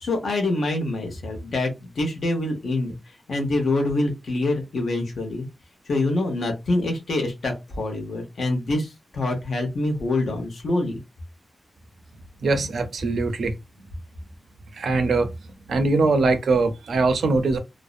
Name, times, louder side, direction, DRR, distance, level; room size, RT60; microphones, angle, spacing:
voice 1, 0.0-3.0 3.3-5.5 5.9-11.0, left 2 dB, 65° left, 0.8 m, -25 dB
voice 2, 12.4-13.5 14.7-15.3 15.7-17.6, right 3 dB, 70° right, 0.5 m, -21 dB
2.5 x 2.0 x 2.4 m
wide cardioid pair, 170°, 0 cm